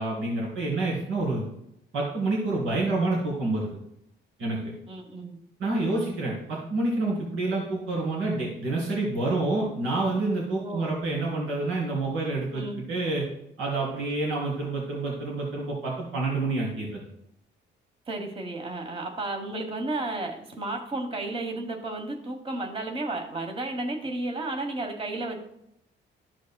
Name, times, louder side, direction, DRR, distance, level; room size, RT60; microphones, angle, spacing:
voice 1, 0.0-1.4 1.9-3.7 4.4-4.6 5.6-13.3 13.6-17.0, right 2 dB, 85° right, -6 dB, 3.1 m, -28 dB
voice 2, 4.9-5.4 10.6-10.9 12.5-12.8 18.1-25.4, right 2 dB, 25° right, 3 dB, 1.3 m, -33 dB
13.5 x 5.2 x 2.3 m, 0.78 s
cardioid pair, 90°, 20 cm